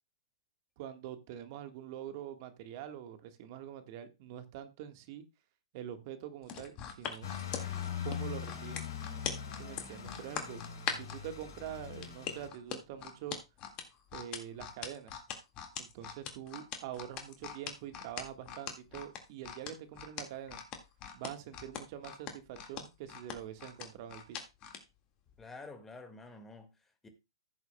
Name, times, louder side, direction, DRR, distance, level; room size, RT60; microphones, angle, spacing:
voice 1, 0.8-5.2 5.7-7.3 8.0-8.9 9.5-10.6 10.9-13.4 14.1-15.1 15.8-20.6 21.1-24.4, right 10 dB, 45° right, 1.4 m, -45 dB
sound 1, 6.4-11.2 12.0-24.8 25.3-25.4, left 8 dB, 30° left, 1.8 m, -41 dB
sound 2, 7.2-12.5, left 8 dB, 55° left, 3.2 m, -41 dB
voice 2, 25.4-27.1, left 3 dB, 10° left, 1.8 m, -50 dB
15.5 x 8.0 x 2.2 m
hypercardioid pair, 120°, 3 cm